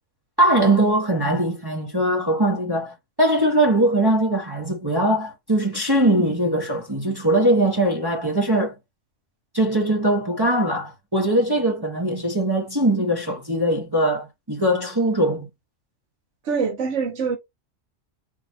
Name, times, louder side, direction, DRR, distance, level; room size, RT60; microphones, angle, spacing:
voice 1, 0.4-8.7 9.5-15.5, right 1 dB, 20° right, 1.1 m, -21 dB
voice 2, 16.5-17.4, right 5 dB, 65° right, 1.6 m, -24 dB
4.7 x 2.6 x 4.3 m
omnidirectional pair, 1.3 m